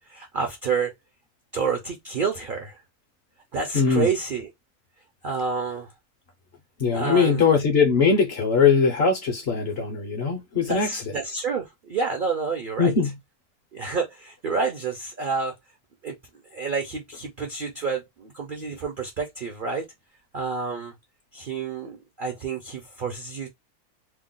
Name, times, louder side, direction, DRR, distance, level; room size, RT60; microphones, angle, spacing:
voice 1, 0.1-0.9 1.5-2.8 3.5-4.5 5.2-5.9 6.9-7.4 10.6-12.9 13.7-15.6 16.0-16.2 16.5-19.9 20.3-20.9 21.3-23.5, right 5 dB, 65° right, 0.5 m, -29 dB
voice 2, 3.7-4.1 6.8-10.9 12.8-13.1, left 5 dB, 55° left, 0.7 m, -21 dB
2.8 x 2.0 x 3.7 m
omnidirectional pair, 1.6 m